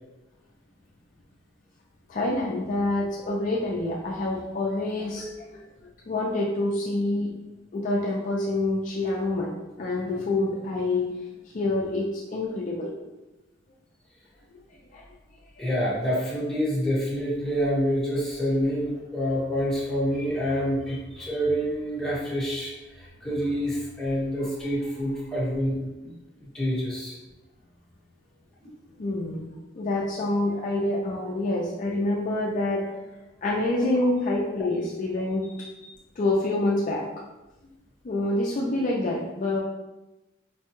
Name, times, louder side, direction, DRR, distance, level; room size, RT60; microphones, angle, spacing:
voice 1, 2.1-5.3 6.1-7.3 7.7-9.5 9.8-11.1 11.5-12.9 14.9-15.0 29.0-29.5 29.8-33.0 33.4-35.9 36.2-37.1 38.0-39.6, left 2 dB, 40° left, -2 dB, 0.4 m, -27 dB
voice 2, 15.6-22.7 23.2-25.8 26.0-26.1 26.5-27.1, equal, 5° left, -8 dB, 1.0 m, -27 dB
4.6 x 2.2 x 2.9 m, 1.0 s
head